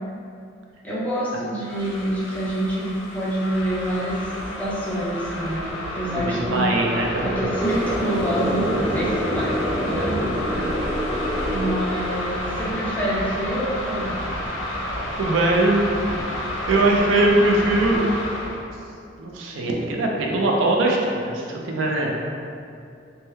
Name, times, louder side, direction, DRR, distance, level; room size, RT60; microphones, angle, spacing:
voice 1, 0.8-5.7 6.0-6.7 7.2-9.5 9.8-10.7 11.5-14.2, right 1 dB, 10° left, -8 dB, 0.5 m, -27 dB
sound 1, 1.6-18.6, left 1 dB, 80° left, 0.5 m, -31 dB
sound 2, 4.0-12.7, equal, 40° right, 0.7 m, -28 dB
voice 2, 6.0-7.3 10.5-10.7 15.2-15.8 16.7-18.0 19.2-22.3, right 2 dB, 85° right, -1 dB, 0.4 m, -21 dB
3.3 x 2.2 x 3.0 m, 2.5 s
head